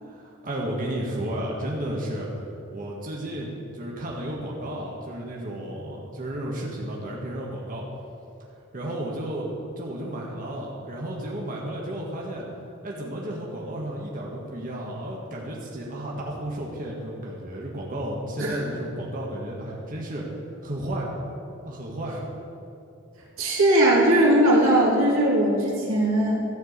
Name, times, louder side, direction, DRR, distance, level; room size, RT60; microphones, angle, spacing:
voice 1, 0.0-2.3 2.7-7.8 8.7-9.5 9.8-12.5 12.8-20.3 20.6-21.2 21.6-22.3, right 1 dB, 40° right, -3 dB, 1.5 m, -33 dB
voice 2, 23.4-26.4, right 1 dB, 90° right, -3 dB, 2.4 m, -19 dB
13.5 x 4.6 x 8.2 m, 2.6 s
head